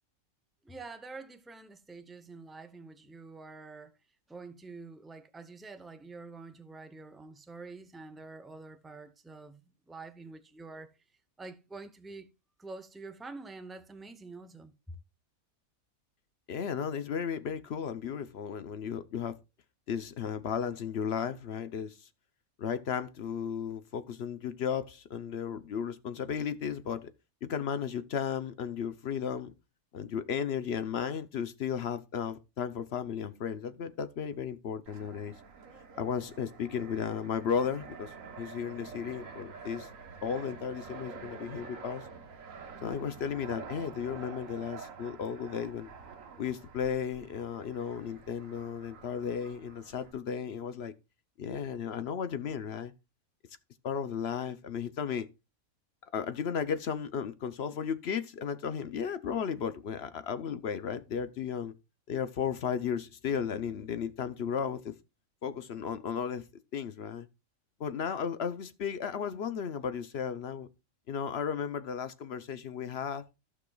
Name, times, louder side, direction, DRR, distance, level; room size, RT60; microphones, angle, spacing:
voice 1, 0.6-4.0 4.3-10.9 11.4-12.3 12.6-14.7, right 3 dB, ahead, 0.4 m, -47 dB
voice 2, 16.5-19.4 19.9-22.1 22.6-27.1 27.4-29.5 29.9-35.3 36.0-39.9 40.2-42.0 42.8-45.9 46.4-50.9 51.4-52.9 53.8-55.3 56.1-61.7 62.1-64.9 65.4-66.4 66.7-67.3 67.8-70.7 71.1-73.2, left 7 dB, 55° left, 0.8 m, -34 dB
Fixed-wing aircraft airplane, 34.9-50.1, right 5 dB, 65° right, 1.4 m, -48 dB
14.5 x 6.0 x 2.3 m
omnidirectional pair, 1.5 m